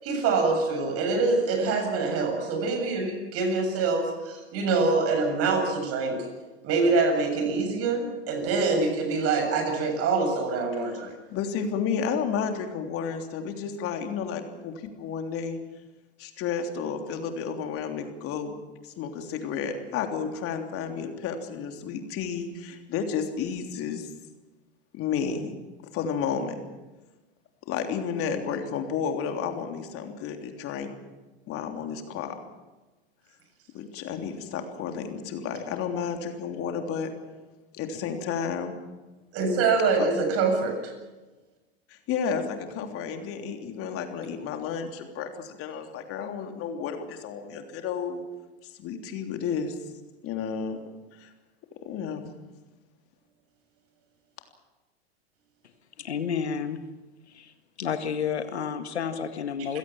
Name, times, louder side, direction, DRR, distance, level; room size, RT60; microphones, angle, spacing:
voice 1, 0.0-6.3 6.6-11.1 39.3-40.9, right 4 dB, 45° right, 5 dB, 7.3 m, -25 dB
voice 2, 11.3-15.6 16.2-18.6 18.8-24.1 24.9-25.5 25.9-26.6 27.7-30.9 31.5-32.3 33.7-37.1 37.7-38.8 41.9-48.3 48.7-49.8 50.2-50.8 51.1-51.3 51.8-52.4, left 6 dB, 45° left, 5 dB, 3.3 m, -32 dB
voice 3, 56.0-56.8 57.3-57.5 57.8-59.8, left 7 dB, 85° left, 8 dB, 2.0 m, -30 dB
27.5 x 17.0 x 7.4 m, 1.2 s
hypercardioid pair, 95°, 32 cm